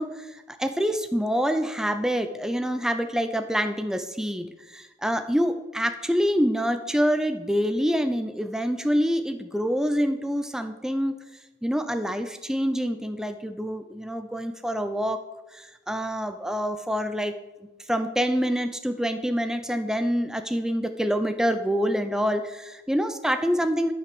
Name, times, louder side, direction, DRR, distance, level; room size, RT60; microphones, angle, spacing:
voice 1, 0.0-11.2 11.6-15.2 15.5-17.3 17.9-23.9, equal, 5° right, 8 dB, 0.5 m, -26 dB
12.0 x 5.8 x 6.1 m, 1.1 s
head